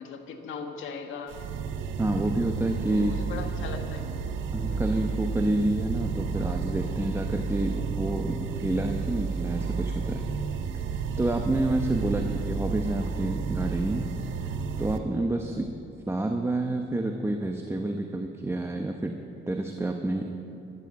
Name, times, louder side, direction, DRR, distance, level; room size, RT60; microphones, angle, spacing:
voice 1, 0.0-1.4 2.9-4.1 4.6-4.9 15.4-15.7, left 5 dB, 80° left, 5 dB, 1.5 m, -39 dB
sound 1, 1.3-15.0, right 5 dB, 80° right, 0.9 m, -31 dB
voice 2, 2.0-3.1 4.5-10.3 11.2-14.1 14.8-15.6 16.1-19.2 19.5-20.2, right 2 dB, 15° right, 3 dB, 0.9 m, -28 dB
13.0 x 12.0 x 7.2 m, 2.8 s
cardioid pair, 90°, 20 cm